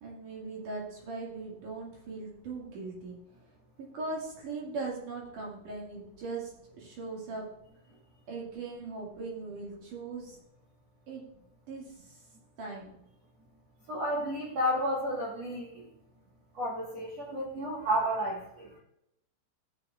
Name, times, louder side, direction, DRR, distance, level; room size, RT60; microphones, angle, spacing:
voice 1, 0.0-3.2 3.8-7.5 8.3-10.4 11.1-11.2 11.7-12.2 12.6-12.9, right 3 dB, 50° right, -3 dB, 2.9 m, -39 dB
voice 2, 13.9-15.9 16.5-18.7, equal, 90° right, -4 dB, 1.4 m, -31 dB
15.0 x 7.0 x 2.4 m, 0.80 s
omnidirectional pair, 5.6 m